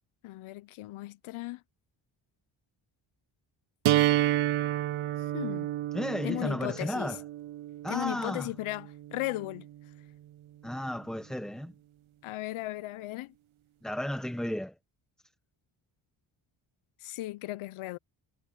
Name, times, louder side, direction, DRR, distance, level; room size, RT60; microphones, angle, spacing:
voice 1, 0.2-1.6 5.3-5.7 6.2-7.2 7.9-9.7 12.2-13.3 17.0-18.0, left 18 dB, 90° left, 0.7 m, -36 dB
sound 1, 3.8-9.8, right 14 dB, 80° right, 1.3 m, -30 dB
voice 2, 5.9-7.2 7.8-8.5 10.6-11.7 13.8-14.7, equal, ahead, 1.0 m, -33 dB
cardioid pair, 105°, 48 cm